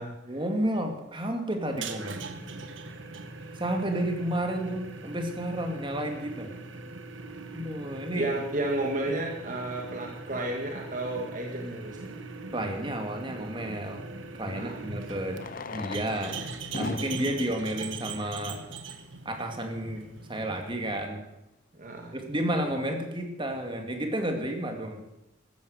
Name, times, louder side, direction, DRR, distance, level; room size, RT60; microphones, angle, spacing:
voice 1, 0.3-2.2 3.6-6.5 7.5-8.3 12.5-14.0 14.4-15.4 15.7-16.4 16.7-18.6 19.2-21.2 22.1-25.0, right 1 dB, 25° right, 4 dB, 2.4 m, -31 dB
sound 1, 1.7-21.1, right 3 dB, 70° right, 1.5 m, -41 dB
voice 2, 8.2-12.2 14.5-14.8 21.8-22.2, right 2 dB, 40° right, 0 dB, 2.1 m, -32 dB
Fireworks, 11.7-11.8 14.1-14.2 15.2-19.0 19.8-19.9 20.1-20.2 20.4-20.5 21.0-21.2, left 3 dB, 45° left, 0.7 m, -41 dB
14.5 x 13.5 x 6.6 m, 0.89 s
head